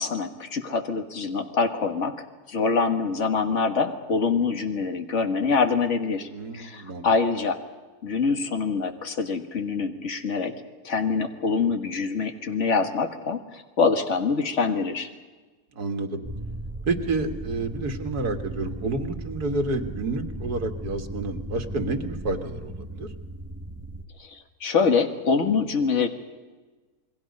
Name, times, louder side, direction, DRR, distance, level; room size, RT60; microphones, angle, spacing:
voice 1, 0.0-2.2 2.5-7.6 8.0-10.5 10.8-15.1 24.2-26.1, left 5 dB, 50° left, 5 dB, 1.9 m, -25 dB
voice 2, 6.3-7.0 15.8-16.2 16.9-23.1, right 3 dB, 90° right, 4 dB, 2.3 m, -29 dB
sound 1, 16.2-24.1, right 1 dB, 15° right, 0.7 m, -36 dB
28.5 x 22.0 x 5.4 m, 1.3 s
omnidirectional pair, 1.6 m